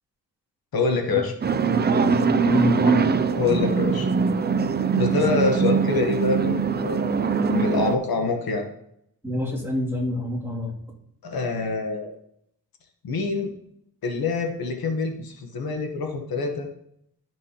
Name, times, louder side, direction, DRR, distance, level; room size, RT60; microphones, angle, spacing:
voice 1, 0.7-1.3 3.3-4.1 4.9-7.2 7.4-8.6 11.2-12.1 13.0-13.5 14.0-16.7, left 4 dB, 75° left, 4 dB, 1.2 m, -25 dB
sound 1, 1.4-8.0, right 5 dB, 30° right, 0.4 m, -22 dB
voice 2, 1.7-3.1 9.2-10.8, left 1 dB, 5° right, -6 dB, 2.5 m, -28 dB
12.5 x 6.1 x 2.9 m, 0.75 s
wide cardioid pair, 135°, 37 cm